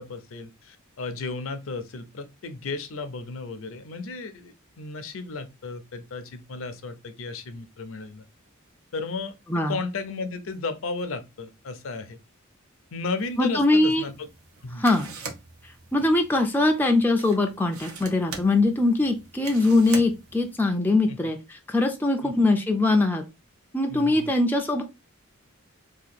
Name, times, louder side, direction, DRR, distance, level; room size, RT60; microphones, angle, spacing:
voice 1, 0.0-8.2 8.9-9.3 9.7-12.2 12.9-14.3 14.6-14.8 21.1-21.2 22.2-22.3 23.9-24.3, left 3 dB, 65° left, 0.5 m, -34 dB
sound 1, 13.2-20.7, right 4 dB, 80° right, 0.8 m, -43 dB
voice 2, 13.4-14.0 14.8-15.1 15.9-21.4 21.7-23.2 23.7-24.8, left 2 dB, 10° left, 0.4 m, -22 dB
2.8 x 2.3 x 4.1 m
head